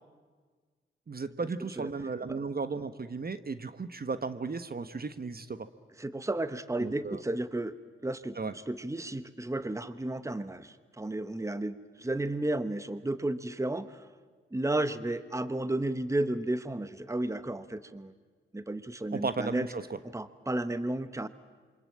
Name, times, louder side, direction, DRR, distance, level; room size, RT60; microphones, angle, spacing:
voice 1, 1.1-5.7 6.8-7.2 8.4-8.5 19.1-20.0, right 4 dB, 50° right, 12 dB, 1.2 m, -35 dB
voice 2, 6.0-7.8 8.0-14.1 14.5-18.1 18.5-19.7 20.1-21.3, right 1 dB, 15° right, 12 dB, 1.1 m, -33 dB
27.5 x 24.5 x 8.7 m, 1.5 s
cardioid pair, 55°, 20 cm